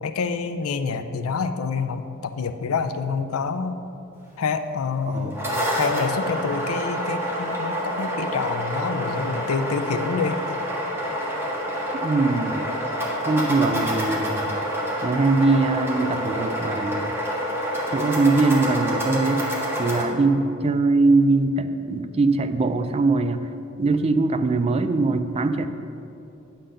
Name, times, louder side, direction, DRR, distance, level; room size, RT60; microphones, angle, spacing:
voice 1, 0.0-3.8 4.4-5.4 5.8-10.4, left 5 dB, 80° left, 10 dB, 0.5 m, -27 dB
sound 1, 5.1-20.0, equal, 10° right, 1.5 m, -27 dB
voice 2, 5.1-5.6 12.0-12.7 13.3-14.6 15.0-17.2 17.9-19.4 19.8-23.5 23.8-25.7, right 3 dB, 30° right, 10 dB, 0.3 m, -22 dB
9.7 x 3.9 x 6.5 m, 2.9 s
head